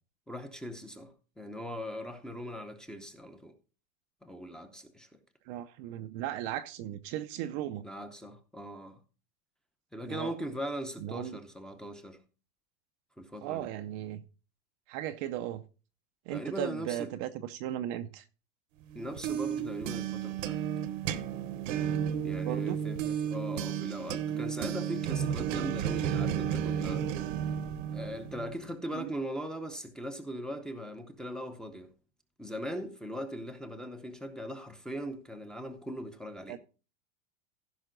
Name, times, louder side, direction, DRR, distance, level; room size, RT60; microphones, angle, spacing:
voice 1, 0.3-3.5 4.2-5.1 7.8-9.0 9.9-12.2 13.2-13.7 16.3-17.1 18.9-20.6 22.2-27.1 27.9-31.9 32.4-36.6, equal, ahead, 0.7 m, -40 dB
voice 2, 5.5-7.9 10.0-10.3 11.0-11.4 13.4-14.2 14.9-15.6 16.3-18.2 22.4-22.8 28.9-29.1 36.5-36.6, right 12 dB, 35° right, 0.5 m, -36 dB
sound 1, 18.9-28.6, right 9 dB, 75° right, 1.1 m, -33 dB
15.5 x 5.7 x 3.8 m
supercardioid pair, 165°, 38 cm